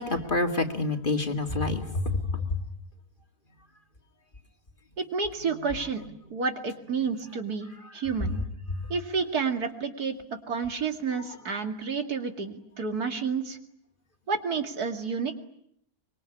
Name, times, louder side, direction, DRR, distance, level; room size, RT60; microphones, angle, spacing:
voice 1, 0.0-2.6, left 3 dB, 35° left, 5 dB, 2.3 m, -27 dB
voice 2, 5.0-6.0 6.3-8.4 8.9-13.6 14.3-15.4, right 5 dB, 80° right, 6 dB, 2.8 m, -30 dB
25.0 x 23.0 x 10.0 m, 0.71 s
omnidirectional pair, 1.6 m